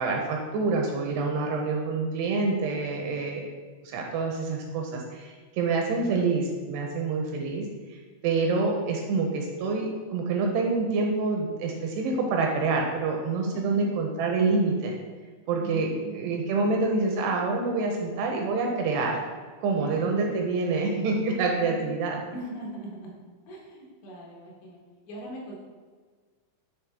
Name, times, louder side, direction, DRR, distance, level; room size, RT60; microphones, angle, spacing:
voice 1, 0.0-3.5 3.8-7.7 8.2-14.9 15.5-19.2 19.6-22.2, right 3 dB, 80° right, 1 dB, 2.5 m, -27 dB
voice 2, 13.5-13.9 15.6-16.5 19.8-20.2 21.6-21.8 22.3-23.2 23.5-24.8 25.1-25.6, right 1 dB, 80° left, -3 dB, 3.6 m, -40 dB
10.0 x 3.4 x 3.4 m, 1.5 s
omnidirectional pair, 5.1 m